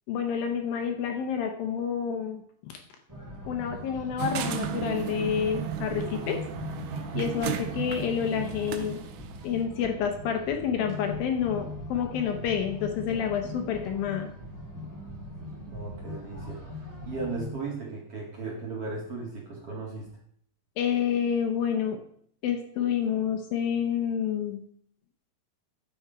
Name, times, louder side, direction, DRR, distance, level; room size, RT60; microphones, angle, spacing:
voice 1, 0.1-2.7 3.5-6.4 7.1-9.0 9.4-14.3 20.8-22.0 22.4-24.6, left 8 dB, 75° left, 5 dB, 2.5 m, -29 dB
sound 1, 3.1-17.5, left 2 dB, 15° right, 0.6 m, -40 dB
sound 2, 4.2-9.5, right 8 dB, 80° right, 2.6 m, -34 dB
voice 2, 15.6-16.6 17.0-20.1, right 3 dB, 45° right, -3 dB, 2.4 m, -36 dB
10.0 x 6.9 x 5.0 m, 0.64 s
omnidirectional pair, 4.6 m